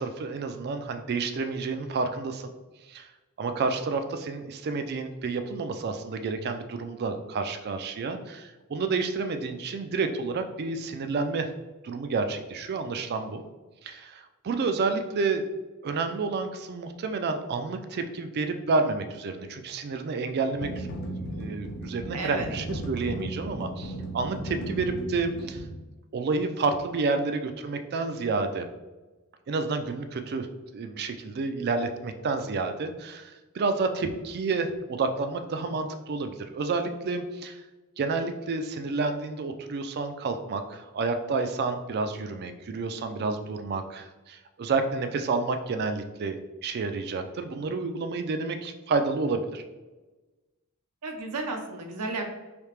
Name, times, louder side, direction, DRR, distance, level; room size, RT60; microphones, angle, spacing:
voice 1, 0.0-2.5 2.9-3.1 3.4-11.5 11.8-13.4 13.8-15.5 15.8-20.9 21.3-25.6 26.1-28.6 29.5-30.5 30.7-37.6 38.0-49.6, right 4 dB, 45° right, 8 dB, 0.4 m, -30 dB
sound 1, 20.5-25.7, right 1 dB, 50° left, 0.6 m, -35 dB
voice 2, 22.1-22.5 51.0-52.3, right 3 dB, 85° right, 3 dB, 0.6 m, -33 dB
3.3 x 2.8 x 3.2 m, 1.2 s
head